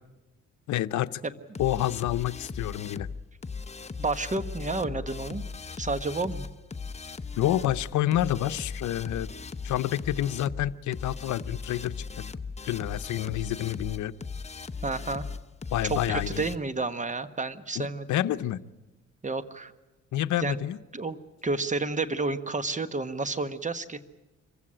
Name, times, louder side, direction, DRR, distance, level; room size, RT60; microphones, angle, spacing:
voice 1, 0.7-1.2 1.6-3.1 7.4-9.3 9.6-12.3 12.7-14.1 15.7-16.4 17.8-18.6 20.1-20.8, left 13 dB, 75° left, 12 dB, 0.8 m, -28 dB
sound 1, 1.5-16.6, left 4 dB, 20° left, 0.9 m, -38 dB
voice 2, 4.0-5.4 5.8-6.5 14.8-15.2 15.9-18.1 19.2-19.7 20.4-20.6 20.9-24.0, right 3 dB, 25° right, 12 dB, 1.3 m, -30 dB
25.5 x 15.5 x 9.9 m, 1.1 s
cardioid pair, 90°, 30 cm